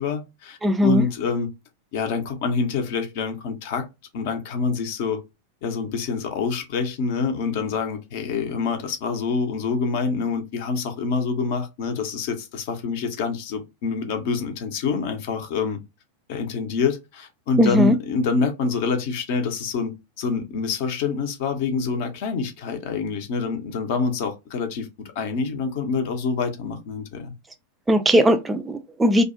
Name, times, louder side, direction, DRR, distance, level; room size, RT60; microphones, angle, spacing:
voice 1, 0.0-1.5 1.9-3.9 4.1-5.2 5.6-15.8 16.3-19.9 20.2-27.3, left 4 dB, 50° left, 0.6 m, -26 dB
voice 2, 0.6-1.1 17.6-17.9 27.9-29.2, equal, 10° right, 0.4 m, -18 dB
2.5 x 2.0 x 2.4 m
figure-of-eight pair, 90°, 0 cm